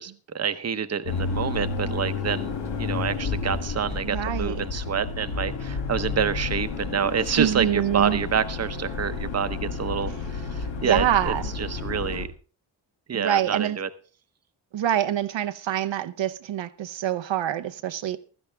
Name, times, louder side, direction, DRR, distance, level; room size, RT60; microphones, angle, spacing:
voice 1, 0.0-12.3 13.1-13.9, right 7 dB, 35° right, 0.9 m, -28 dB
sound 1, 1.1-12.3, left 4 dB, 80° left, 2.2 m, -31 dB
voice 2, 4.0-4.7 7.4-8.2 10.8-11.4 13.1-13.8 14.7-18.2, right 11 dB, 80° right, 0.8 m, -25 dB
15.5 x 13.0 x 3.4 m
wide cardioid pair, 110°, 44 cm